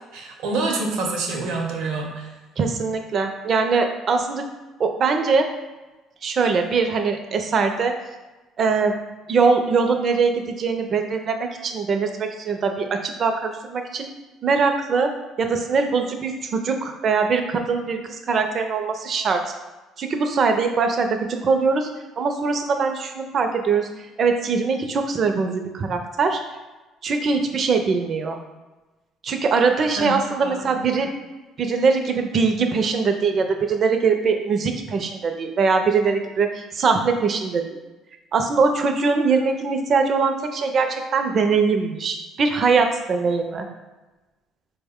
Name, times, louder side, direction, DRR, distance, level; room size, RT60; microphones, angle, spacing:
voice 1, 0.1-2.3 30.0-30.9, right 3 dB, 80° right, 1 dB, 0.7 m, -27 dB
voice 2, 2.6-4.4 4.8-5.5 6.2-8.0 8.6-8.9 9.3-14.1 14.4-15.1 15.4-19.4 20.0-21.9 22.2-23.9 24.2-26.4 27.0-28.4 29.2-31.1 31.6-37.8 38.3-43.7, right 4 dB, 45° right, 5 dB, 0.4 m, -22 dB
4.2 x 2.1 x 3.5 m, 1.1 s
cardioid pair, 100°, 0 cm